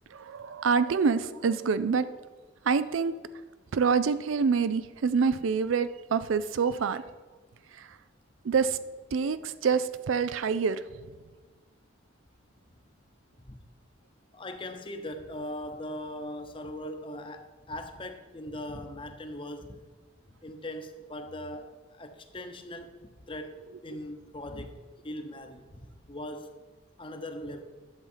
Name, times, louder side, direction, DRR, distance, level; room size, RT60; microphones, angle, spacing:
voice 1, 0.1-2.1 2.6-3.1 3.7-7.0 7.7-8.0 8.4-8.8 9.1-10.8, right 5 dB, 85° right, 0.4 m, -26 dB
voice 2, 14.3-19.9 20.4-26.6 27.0-27.6, left 1 dB, 25° left, 0.8 m, -40 dB
11.0 x 7.4 x 5.6 m
head